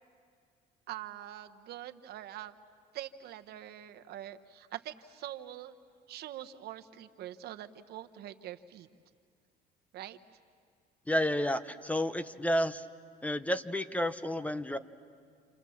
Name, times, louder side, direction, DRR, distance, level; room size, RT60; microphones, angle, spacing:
voice 1, 0.9-2.5 2.9-5.7 6.1-8.9 9.9-10.2, right 12 dB, 70° right, 9 dB, 1.0 m, -44 dB
voice 2, 11.1-12.8 13.2-14.8, equal, 10° left, 13 dB, 0.7 m, -31 dB
29.5 x 28.0 x 7.1 m, 2.1 s
cardioid pair, 110°, 17 cm